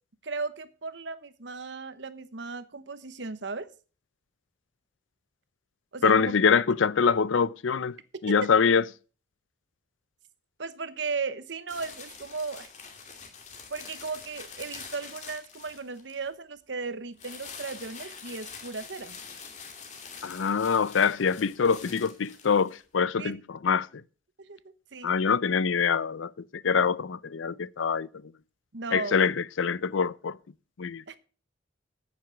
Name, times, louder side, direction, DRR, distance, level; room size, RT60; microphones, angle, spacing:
voice 1, 0.2-3.7 5.9-6.4 8.3-8.4 10.6-12.7 13.7-19.2 23.2-23.3 24.4-24.6 24.9-25.1 28.7-29.3 31.1-31.2, right 4 dB, 70° right, 1.0 m, -36 dB
voice 2, 6.0-8.0 8.2-8.8 20.2-23.9 25.0-26.3 26.6-28.1 28.9-30.4 30.8-31.0, left 6 dB, 90° left, 0.5 m, -24 dB
sound 1, 11.7-16.3 17.2-22.8, left 5 dB, 40° left, 2.4 m, -45 dB
9.5 x 9.4 x 5.9 m
head